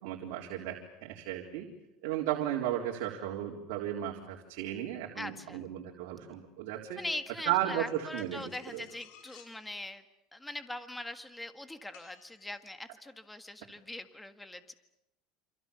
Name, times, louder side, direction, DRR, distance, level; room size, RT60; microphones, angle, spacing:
voice 1, 0.0-1.7 2.0-7.0 7.5-8.8, right 12 dB, 75° right, -1 dB, 3.9 m, -35 dB
voice 2, 5.2-5.7 7.0-10.0 10.3-14.7, left 1 dB, 5° left, 9 dB, 1.7 m, -42 dB
sound 1, 8.2-9.6 11.9-12.7, left 9 dB, 75° left, 4.9 m, -57 dB
28.0 x 27.5 x 7.0 m, 0.88 s
supercardioid pair, 135°, 0 cm